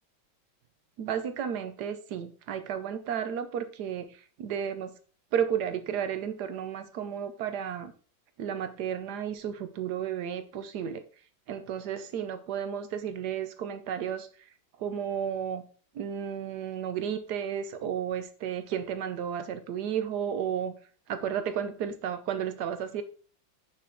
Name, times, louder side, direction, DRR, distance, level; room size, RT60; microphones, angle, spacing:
voice 1, 1.0-4.1 4.4-4.9 5.3-7.9 8.4-11.0 11.5-14.3 14.8-15.6 15.9-20.7 21.1-23.0, right 8 dB, 65° right, 1.3 m, -33 dB
10.5 x 4.3 x 3.6 m
omnidirectional pair, 2.1 m